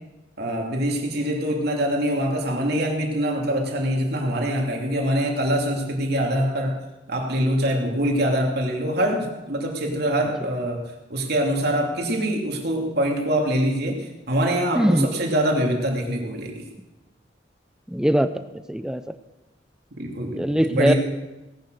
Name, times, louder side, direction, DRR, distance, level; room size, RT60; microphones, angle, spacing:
voice 1, 0.4-6.7 7.1-10.8 11.1-16.6 20.0-20.9, equal, 60° right, 1 dB, 2.9 m, -24 dB
voice 2, 14.7-15.1 17.9-19.0 20.4-20.9, equal, 5° right, 10 dB, 0.5 m, -21 dB
18.0 x 10.5 x 6.6 m, 1.0 s
head